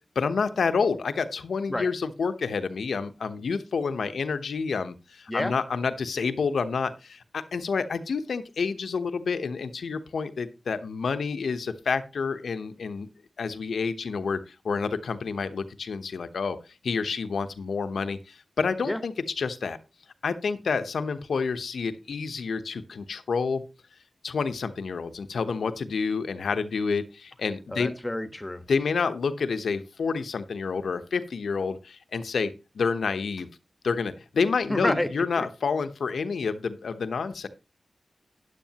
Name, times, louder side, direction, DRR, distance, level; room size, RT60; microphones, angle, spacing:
voice 1, 0.1-13.1 13.4-16.6 16.8-19.8 20.2-23.6 24.2-27.9 28.7-33.5 33.8-37.5, left 5 dB, 90° left, 11 dB, 0.9 m, -29 dB
voice 2, 27.7-28.6 34.7-35.1 35.3-35.5, left 1 dB, 20° left, 10 dB, 1.3 m, -29 dB
13.0 x 10.0 x 2.9 m, 0.29 s
cardioid pair, 55°, 0 cm